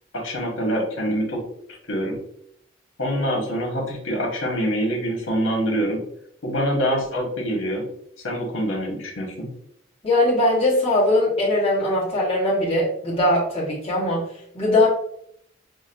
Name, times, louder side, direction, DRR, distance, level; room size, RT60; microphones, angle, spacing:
voice 1, 0.1-1.4 1.9-2.2 3.0-6.0 6.4-7.8 8.2-9.5, equal, 75° left, -2 dB, 1.2 m, -25 dB
voice 2, 10.0-14.9, left 1 dB, 30° left, -6 dB, 1.3 m, -20 dB
6.0 x 2.1 x 2.5 m, 0.71 s
head